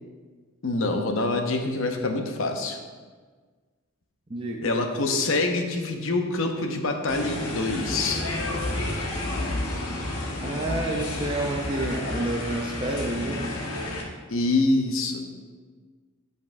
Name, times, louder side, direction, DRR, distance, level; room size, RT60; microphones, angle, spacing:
voice 1, 0.6-2.8 4.6-8.2 14.3-15.2, left 2 dB, 60° left, 4 dB, 0.8 m, -25 dB
voice 2, 4.3-4.7 10.4-13.5, right 1 dB, 25° right, -2 dB, 0.5 m, -29 dB
sound 1, 7.1-14.0, left 1 dB, 80° left, 1.2 m, -31 dB
11.0 x 5.3 x 2.6 m, 1.5 s
head